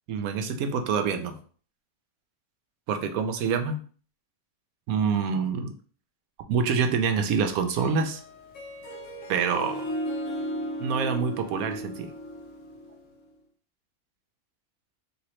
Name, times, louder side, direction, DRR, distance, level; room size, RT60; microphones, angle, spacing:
voice 1, 0.1-1.4 2.9-3.8 4.9-5.7 6.5-8.2 9.3-9.9 10.8-12.1, right 6 dB, 80° right, 6 dB, 1.0 m, -26 dB
Harp, 7.6-13.2, equal, 65° left, 1.0 m, -36 dB
3.4 x 2.9 x 3.1 m, 0.43 s
omnidirectional pair, 1.5 m